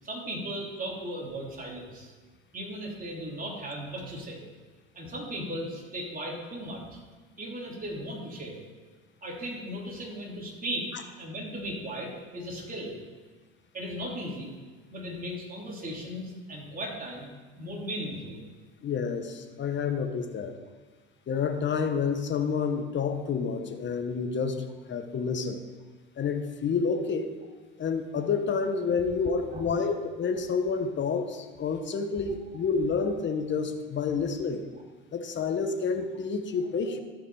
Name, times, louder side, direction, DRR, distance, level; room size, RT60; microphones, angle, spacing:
voice 1, 0.0-2.1 2.5-4.4 4.9-7.0 7.4-8.6 9.2-10.9 11.2-12.9 13.7-14.5 14.9-17.3 17.6-18.4 29.5-29.6 34.7-34.8, equal, 30° right, -3 dB, 3.4 m, -37 dB
voice 2, 18.8-20.5 21.3-25.6 26.2-27.3 27.8-34.6 35.1-37.0, left 5 dB, 40° left, 7 dB, 1.3 m, -29 dB
13.0 x 5.9 x 4.9 m, 1.4 s
hypercardioid pair, 80°, 29 cm